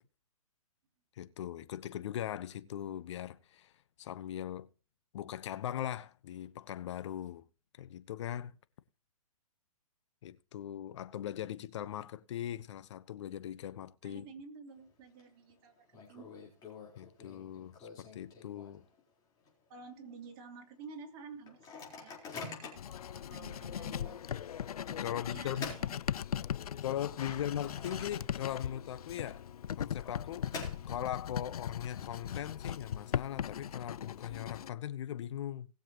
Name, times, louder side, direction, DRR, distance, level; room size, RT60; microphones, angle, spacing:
voice 1, 1.2-3.7 4.0-4.7 5.1-7.4 7.8-8.5 10.2-14.2 16.9-18.8 25.0-25.8 26.8-29.4 29.8-30.5 30.9-35.7, left 11 dB, 50° left, 1.0 m, -40 dB
voice 2, 14.0-16.3 19.7-22.2 23.2-24.2 25.2-26.0 27.3-27.4, right 5 dB, 40° right, 3.1 m, -51 dB
Microwave oven, 14.7-15.2 15.5-15.6 15.9-19.0 19.4-19.5 19.8-20.1 20.6-20.7 21.5-23.0 23.6-23.7 24.9-26.7 27.1-28.6 28.9-29.0 29.9-31.3, left 4 dB, 20° left, 4.1 m, -47 dB
Writing, 22.8-34.7, left 9 dB, 80° left, 0.4 m, -39 dB
19.5 x 7.3 x 3.0 m
hypercardioid pair, 135°, 19 cm